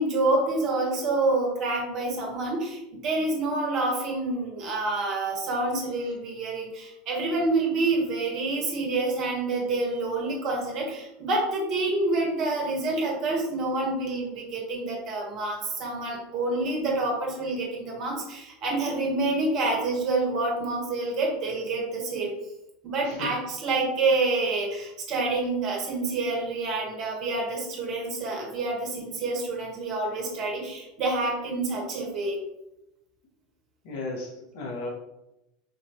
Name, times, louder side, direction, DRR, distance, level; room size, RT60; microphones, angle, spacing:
voice 1, 0.0-22.3 22.8-32.4, right 2 dB, 50° right, -1 dB, 1.6 m, -27 dB
voice 2, 33.8-34.9, left 2 dB, 65° left, -1 dB, 1.3 m, -35 dB
5.1 x 3.0 x 3.2 m, 0.90 s
hypercardioid pair, 80°, 0 cm